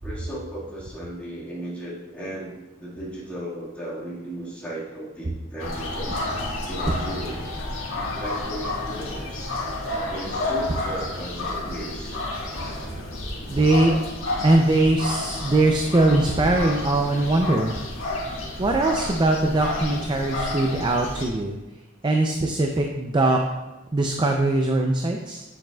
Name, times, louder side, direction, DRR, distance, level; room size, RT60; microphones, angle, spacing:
voice 1, 0.0-6.1 6.7-7.5 8.2-9.6 10.1-12.2, right 1 dB, 5° left, -8 dB, 1.7 m, -36 dB
sound 1, 5.6-21.3, left 2 dB, 85° left, 1.6 m, -30 dB
voice 2, 13.5-14.0 14.4-17.8 18.6-21.6 22.0-23.4 23.9-25.4, right 2 dB, 25° right, 2 dB, 0.4 m, -21 dB
7.4 x 7.3 x 2.3 m, 1.1 s
head